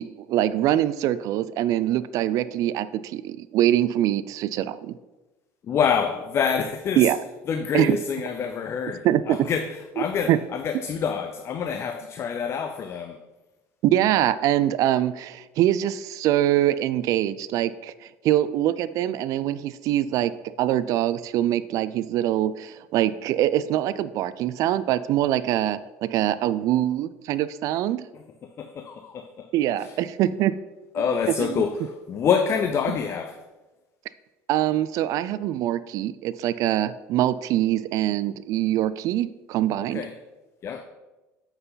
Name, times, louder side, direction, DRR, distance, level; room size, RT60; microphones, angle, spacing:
voice 1, 0.0-4.9 7.0-7.2 7.7-8.0 9.0-9.4 10.3-10.4 13.8-20.3 20.6-28.0 29.5-30.5 31.0-31.1 31.4-31.6 34.5-40.1, right 12 dB, 55° right, 0.4 m, -24 dB
voice 2, 5.7-7.1 7.5-13.2 28.4-29.5 29.8-29.9 30.9-33.4 39.8-40.1 40.6-40.8, left 7 dB, 40° left, 0.5 m, -27 dB
7.8 x 5.7 x 4.0 m
supercardioid pair, 100°, 7 cm